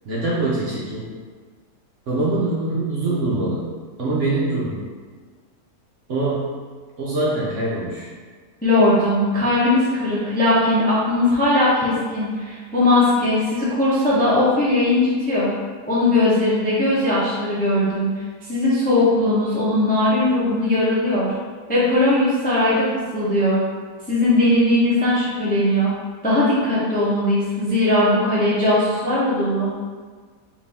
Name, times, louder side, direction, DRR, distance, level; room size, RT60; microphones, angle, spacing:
voice 1, 0.0-1.1 2.1-3.7 4.0-4.8 6.1-6.5 7.0-8.1, right 2 dB, 55° right, -6 dB, 1.0 m, -23 dB
voice 2, 8.6-15.5 15.9-18.1 18.5-21.3 21.7-22.9 23.1-23.6 24.1-25.9 26.2-29.7, left 1 dB, 10° left, -8 dB, 0.6 m, -19 dB
4.8 x 2.7 x 3.5 m, 1.5 s
omnidirectional pair, 1.8 m